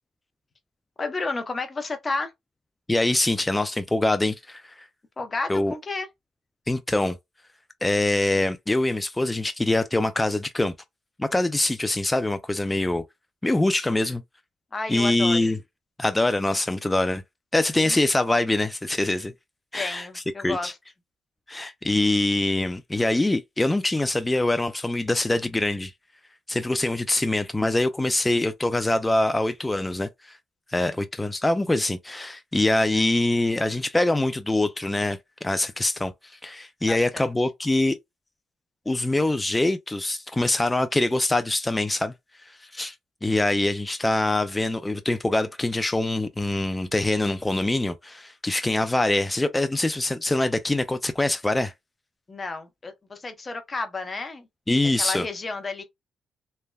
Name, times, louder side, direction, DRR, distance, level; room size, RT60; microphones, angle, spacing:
voice 1, 1.0-2.3 5.2-6.1 14.7-15.5 17.8-18.0 19.8-20.7 30.8-31.0 36.9-37.3 52.3-54.5 55.0-55.8, left 3 dB, 30° left, 0.7 m, -31 dB
voice 2, 2.9-4.8 5.5-5.7 6.7-7.2 7.8-10.7 11.2-13.0 13.4-14.2 14.9-15.6 16.0-17.2 17.5-19.3 19.7-20.7 21.5-25.9 26.5-30.4 30.7-38.0 38.9-42.1 42.4-43.0 43.2-51.7 54.7-55.3, left 2 dB, 15° left, 0.3 m, -24 dB
3.3 x 2.1 x 2.2 m
cardioid pair, 90°, 0 cm